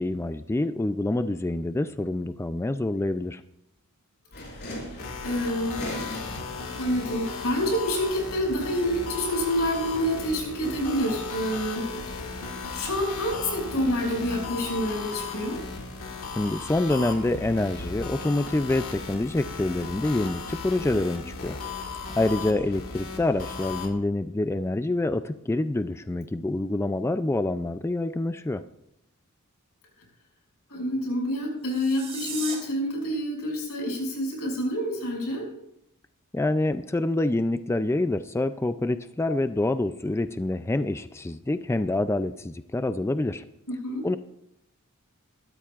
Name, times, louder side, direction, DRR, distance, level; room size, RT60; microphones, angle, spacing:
voice 1, 0.0-3.4 16.4-21.6 22.2-28.6 36.3-43.4 44.0-44.2, left 2 dB, 10° left, 10 dB, 0.3 m, -26 dB
sound 1, 4.3-23.9, equal, 50° left, 5.5 m, -42 dB
sound 2, 5.0-23.9, left 5 dB, 70° left, 2.0 m, -37 dB
voice 2, 5.2-5.9 6.7-12.4 12.7-15.6 30.7-35.5 43.7-44.1, equal, 85° left, 0 dB, 6.0 m, -28 dB
sound 3, 31.6-32.6, right 5 dB, 25° right, 3.3 m, -36 dB
22.5 x 13.0 x 2.4 m, 0.79 s
head